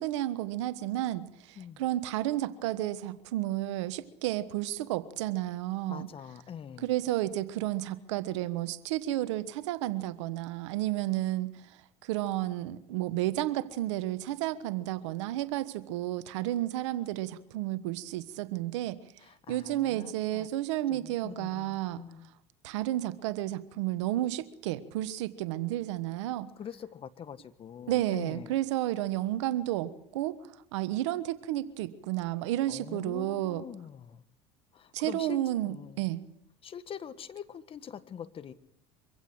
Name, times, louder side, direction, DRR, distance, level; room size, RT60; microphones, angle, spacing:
voice 1, 0.0-6.1 6.8-11.5 12.0-19.0 19.5-22.0 22.6-26.5 27.9-30.3 30.7-33.6 34.9-36.2, right 14 dB, 80° right, 14 dB, 1.3 m, -32 dB
voice 2, 5.9-6.9 19.2-20.5 20.9-22.3 26.6-28.5 32.7-34.2 34.7-35.4 35.6-36.1 36.6-38.5, left 8 dB, 40° left, 13 dB, 1.5 m, -44 dB
24.5 x 16.0 x 7.8 m, 0.76 s
hypercardioid pair, 85°, 15 cm